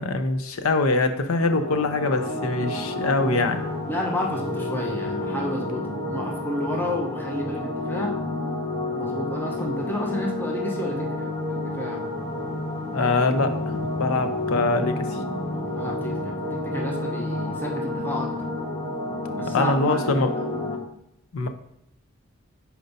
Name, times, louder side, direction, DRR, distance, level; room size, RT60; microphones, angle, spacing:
voice 1, 0.0-3.6 12.9-13.5 13.8-15.2 19.5-20.3 21.3-21.5, left 3 dB, 85° left, 8 dB, 0.6 m, -23 dB
sound 1, 1.3-20.8, left 2 dB, 45° left, 2.3 m, -30 dB
voice 2, 3.9-8.2 8.9-12.0 15.6-18.3 19.3-20.6, left 1 dB, 10° left, -2 dB, 0.9 m, -31 dB
5.2 x 4.5 x 4.0 m, 0.79 s
head